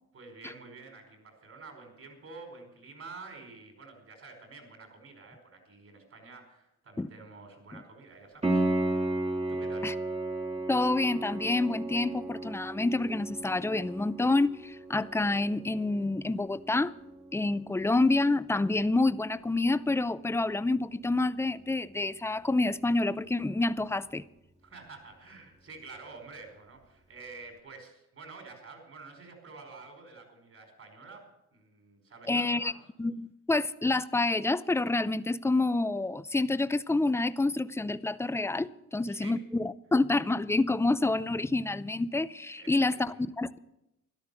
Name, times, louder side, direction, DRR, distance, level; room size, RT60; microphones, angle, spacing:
voice 1, 0.1-9.2 9.5-10.0 24.6-32.8 38.9-39.4 42.6-43.2, right 3 dB, 50° right, 4 dB, 4.9 m, -49 dB
Piano, 8.4-19.1 22.4-22.5, right 1 dB, 20° right, 1.8 m, -35 dB
voice 2, 10.7-16.9 17.3-24.2 32.3-32.7 33.0-43.6, left 2 dB, 10° left, 15 dB, 0.5 m, -28 dB
13.5 x 11.5 x 7.0 m, 0.86 s
cardioid pair, 90°, 30 cm